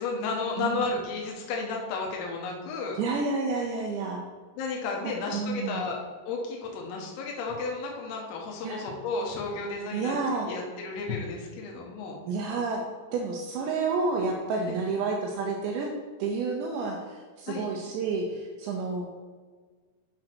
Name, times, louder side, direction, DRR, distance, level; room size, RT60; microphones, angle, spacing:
voice 1, 0.0-3.0 4.6-6.0 6.3-10.2 10.4-12.2 14.7-14.8 17.5-17.7, left 4 dB, 85° left, 0 dB, 3.9 m, -33 dB
voice 2, 3.0-4.2 5.3-5.8 8.6-8.9 9.9-10.5 12.3-12.8 13.1-15.9 16.2-19.1, right 4 dB, 80° right, 1 dB, 2.6 m, -30 dB
8.6 x 6.1 x 4.5 m, 1.5 s
omnidirectional pair, 5.8 m